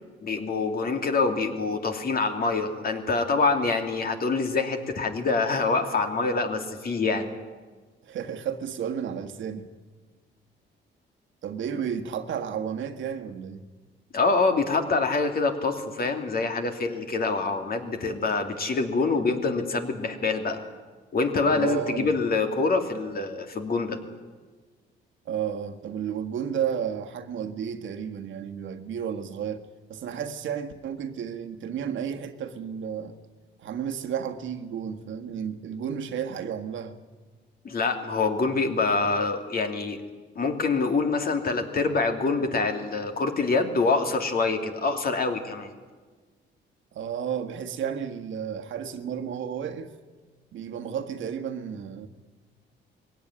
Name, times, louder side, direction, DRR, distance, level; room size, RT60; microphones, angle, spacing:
voice 1, 0.2-7.3 14.1-20.6 21.1-24.0 37.6-40.0 40.3-45.7, left 4 dB, 50° left, 2.8 m, -25 dB
voice 2, 8.0-9.7 11.4-13.6 21.5-22.2 25.2-29.6 29.9-33.1 33.6-37.0 46.9-49.9 50.5-52.1, right 8 dB, 75° right, 1.6 m, -32 dB
21.5 x 17.0 x 9.9 m
cardioid pair, 90°, 20 cm